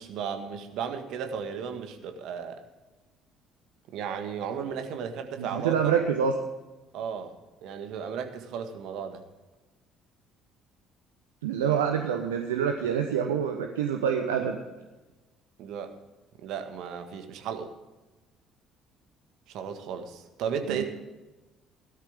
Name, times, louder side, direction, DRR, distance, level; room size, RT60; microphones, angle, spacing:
voice 1, 0.0-2.6 3.9-5.9 6.9-7.3 7.6-9.2 15.6-15.9 16.4-17.7 19.5-20.8, right 7 dB, 60° right, 6 dB, 1.6 m, -34 dB
voice 2, 5.4-6.3 11.4-14.6 20.7-20.8, right 7 dB, 75° right, 5 dB, 0.9 m, -26 dB
16.5 x 13.0 x 3.7 m, 1.1 s
figure-of-eight pair, 50°, 0 cm